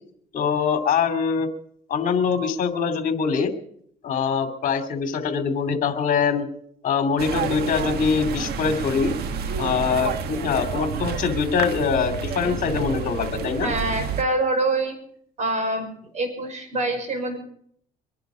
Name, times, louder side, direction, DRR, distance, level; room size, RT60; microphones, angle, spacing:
voice 1, 0.3-1.5 1.9-3.5 4.0-6.4 6.8-9.1 9.6-13.7, left 6 dB, 50° left, 7 dB, 2.6 m, -23 dB
sound 1, 7.2-14.2, right 6 dB, 70° right, 1.6 m, -29 dB
voice 2, 13.6-15.0 15.4-15.9 16.1-17.4, right 2 dB, 45° right, 6 dB, 5.8 m, -25 dB
24.0 x 10.5 x 5.1 m, 0.64 s
cardioid pair, 110°, 17 cm